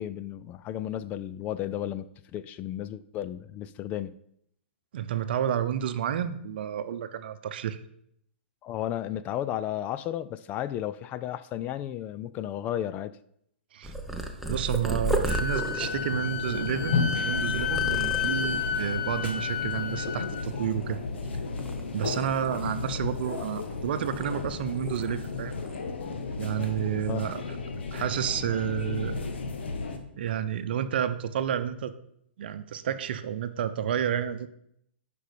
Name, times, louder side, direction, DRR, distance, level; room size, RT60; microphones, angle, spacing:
voice 1, 0.0-4.2 8.6-13.2 27.1-27.2, left 11 dB, 25° left, 14 dB, 0.4 m, -33 dB
voice 2, 4.9-7.8 13.7-13.9 14.5-21.0 21.9-25.5 26.4-27.4 27.9-29.2 30.1-31.9 32.4-34.5, right 9 dB, 60° right, 11 dB, 0.8 m, -30 dB
Purr, 13.8-18.7 19.3-19.7 20.0-21.2 21.6-23.7 24.0-25.3 25.5-25.8 26.5-26.8, right 1 dB, ahead, 0.8 m, -34 dB
Wind instrument woodwind instrument, 15.3-20.4, left 7 dB, 55° left, 0.8 m, -31 dB
sound 1, 15.8-30.0, left 4 dB, 70° left, 1.5 m, -34 dB
10.0 x 5.2 x 5.1 m, 0.72 s
hypercardioid pair, 130°, 6 cm